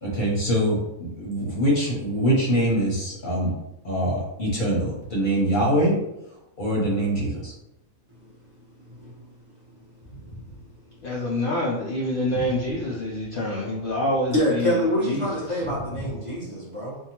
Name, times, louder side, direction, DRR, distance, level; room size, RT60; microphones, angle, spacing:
voice 1, 0.0-3.5 3.8-6.0 6.6-7.5, right 1 dB, 45° left, -5 dB, 0.8 m, -23 dB
voice 2, 11.0-15.3 15.5-15.6, left 1 dB, 75° left, -4 dB, 0.5 m, -27 dB
voice 3, 14.3-17.0, equal, 30° right, -7 dB, 0.7 m, -26 dB
2.7 x 2.2 x 2.8 m, 0.86 s
omnidirectional pair, 1.4 m